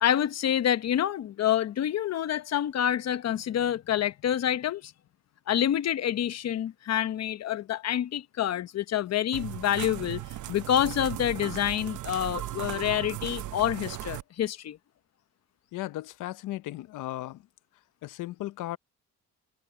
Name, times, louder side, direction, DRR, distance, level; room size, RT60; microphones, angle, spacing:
voice 1, 0.0-4.9 5.5-14.8, left 10 dB, 60° left, 0.9 m, -27 dB
sound 1, 9.3-14.2, right 13 dB, 75° right, 1.0 m, -37 dB
voice 2, 15.7-17.4 18.0-18.8, left 16 dB, 85° left, 0.8 m, -36 dB
cardioid pair, 90°, 30 cm